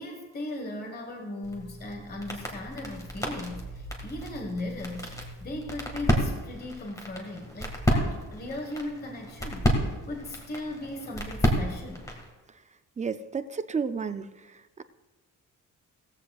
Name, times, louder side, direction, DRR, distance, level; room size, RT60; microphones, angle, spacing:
voice 1, 0.0-12.0, left 1 dB, 30° left, 2 dB, 1.4 m, -38 dB
sound 1, 1.4-12.3, equal, 10° left, 1.8 m, -31 dB
voice 2, 13.0-14.8, right 5 dB, 25° right, 12 dB, 0.3 m, -32 dB
17.5 x 14.5 x 2.4 m, 1.2 s
wide cardioid pair, 165°, 33 cm